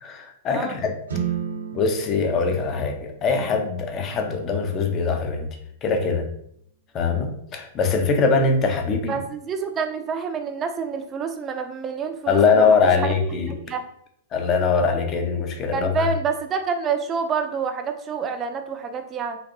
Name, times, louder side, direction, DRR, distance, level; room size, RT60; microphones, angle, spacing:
voice 1, 0.0-0.9 1.7-5.5 5.8-6.3 6.9-9.2 12.3-13.5 14.3-16.1, left 4 dB, 30° left, 5 dB, 0.6 m, -22 dB
sound 1, 1.1-5.1, right 8 dB, 80° right, 0.8 m, -34 dB
voice 2, 9.1-12.7 13.0-13.1 13.4-13.8 15.7-19.4, right 5 dB, 25° right, 7 dB, 0.5 m, -28 dB
4.1 x 2.5 x 2.6 m, 0.71 s
figure-of-eight pair, 105°, 0 cm